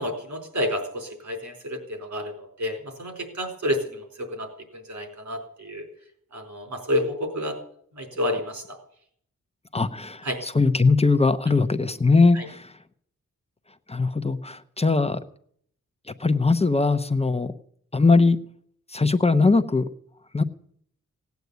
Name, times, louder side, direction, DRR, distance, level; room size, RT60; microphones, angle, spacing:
voice 1, 0.0-4.5 4.9-5.8 6.3-7.5 8.0-8.6 10.2-10.4 12.3-12.5, left 1 dB, 65° right, 4 dB, 4.3 m, -29 dB
voice 2, 9.7-12.6 13.9-15.2 16.2-17.5 17.9-18.4 18.9-19.9 20.3-20.4, left 3 dB, 20° left, 10 dB, 0.7 m, -20 dB
17.5 x 9.4 x 8.2 m, 0.64 s
wide cardioid pair, 170°, 32 cm